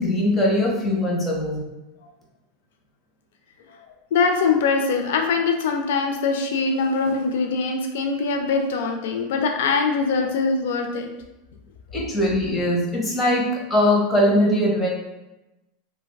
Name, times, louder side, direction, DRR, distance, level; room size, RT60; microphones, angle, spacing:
voice 1, 0.0-1.6 11.9-14.9, left 1 dB, 15° left, -2 dB, 0.7 m, -21 dB
voice 2, 4.1-11.1, left 4 dB, 80° left, 4 dB, 0.4 m, -22 dB
3.3 x 2.2 x 2.2 m, 0.98 s
supercardioid pair, 135°, 0 cm